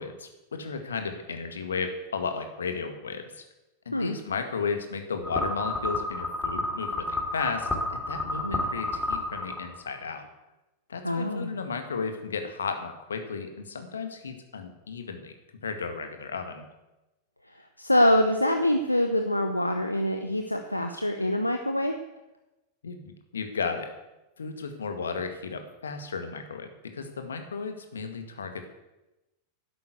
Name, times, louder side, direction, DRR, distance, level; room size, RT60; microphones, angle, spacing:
voice 1, 0.0-3.4 3.9-7.7 8.1-10.3 10.9-15.3 15.6-16.7 22.8-23.9 24.4-28.7, left 5 dB, 70° left, 7 dB, 1.9 m, -34 dB
sound 1, 5.2-10.0, left 2 dB, 10° left, 3.0 m, -31 dB
voice 2, 11.0-11.5 17.8-21.9, left 1 dB, 85° left, 5 dB, 0.9 m, -25 dB
11.5 x 10.5 x 8.1 m, 1.0 s
figure-of-eight pair, 90°, 0 cm